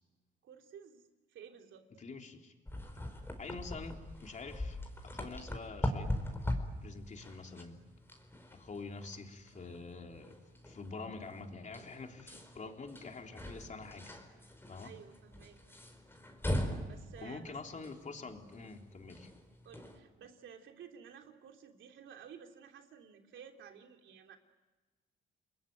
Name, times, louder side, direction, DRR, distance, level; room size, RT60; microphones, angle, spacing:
voice 1, 0.4-1.9 14.8-15.6 16.8-17.6 19.6-24.4, right 7 dB, 75° right, 4 dB, 3.3 m, -54 dB
voice 2, 2.0-2.5 3.4-4.8 5.0-6.1 6.8-7.8 8.5-10.4 10.7-14.1 14.7-14.9 17.2-19.3, left 4 dB, 40° left, 3 dB, 3.5 m, -46 dB
sound 1, 2.7-20.0, left 1 dB, 10° left, 4.6 m, -41 dB
30.0 x 21.0 x 9.4 m, 1.2 s
cardioid pair, 90°, 20 cm